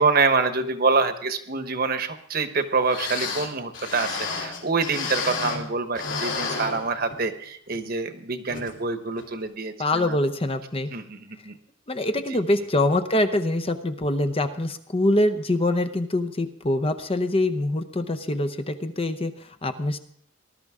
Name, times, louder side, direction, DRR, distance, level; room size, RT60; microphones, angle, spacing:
voice 1, 0.0-10.2 10.9-11.5, right 4 dB, 50° right, 8 dB, 1.2 m, -26 dB
sound 1, 2.6-2.7 2.9-5.7 5.9-7.3 7.7-7.8 8.5-8.7 9.2-9.3, left 4 dB, 65° left, 3.4 m, -31 dB
voice 2, 9.8-10.9 11.9-20.0, left 1 dB, 30° left, 8 dB, 0.7 m, -24 dB
19.5 x 12.0 x 3.7 m, 0.63 s
head